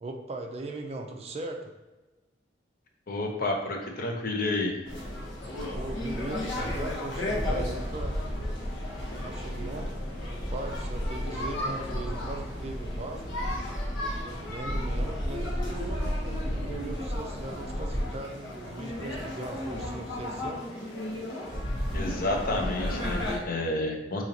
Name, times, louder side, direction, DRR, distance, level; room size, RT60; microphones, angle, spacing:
voice 1, 0.0-1.7 5.7-8.2 9.1-10.0 10.3-13.2 14.2-20.6, right 2 dB, 35° right, 3 dB, 0.4 m, -39 dB
voice 2, 3.1-4.8 21.9-24.2, left 2 dB, 50° left, 2 dB, 0.6 m, -30 dB
sound 1, 4.8-23.4, left 1 dB, 85° left, 1.0 m, -33 dB
3.9 x 2.8 x 2.8 m, 1.1 s
head